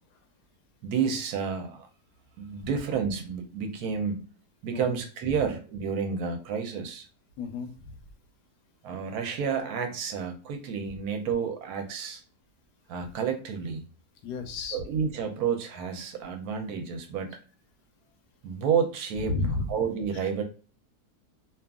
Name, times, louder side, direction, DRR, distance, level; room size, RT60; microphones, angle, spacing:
voice 1, 0.8-1.9 2.4-4.3 4.6-7.1 8.8-12.2 12.9-13.8 14.7-17.3 18.4-19.4 19.7-20.4, right 6 dB, 70° right, 5 dB, 1.0 m, -30 dB
voice 2, 7.4-8.0 14.2-14.8 19.3-19.7, left 3 dB, 85° left, 5 dB, 1.2 m, -32 dB
2.8 x 2.3 x 2.3 m, 0.39 s
omnidirectional pair, 1.7 m